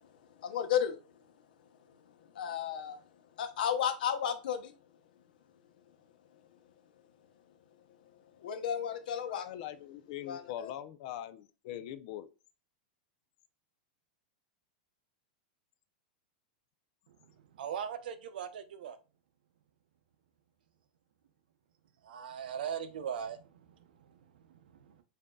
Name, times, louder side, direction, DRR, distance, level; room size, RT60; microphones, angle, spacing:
voice 1, 0.4-1.0 2.3-3.0 3.4-4.7 8.4-9.4 10.2-10.7, left 9 dB, 75° left, 0.9 m, -33 dB
voice 2, 9.3-12.3, left 11 dB, 45° left, 0.5 m, -42 dB
voice 3, 17.1-19.0 22.0-25.0, right 8 dB, 85° right, 0.7 m, -41 dB
7.5 x 2.7 x 2.3 m
supercardioid pair, 165°, 5 cm